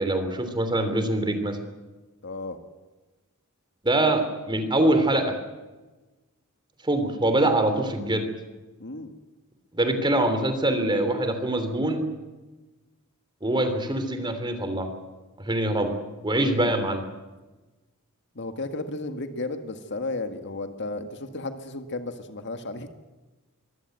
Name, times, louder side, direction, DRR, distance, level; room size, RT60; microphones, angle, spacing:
voice 1, 0.0-1.6 3.8-5.3 6.8-8.3 9.7-12.0 13.4-14.9 15.4-15.9 16.2-17.0, right 1 dB, 20° right, 8 dB, 3.1 m, -24 dB
voice 2, 2.2-2.6 8.8-9.1 18.4-22.9, left 2 dB, 55° left, 7 dB, 1.8 m, -33 dB
24.0 x 16.0 x 9.3 m, 1.2 s
head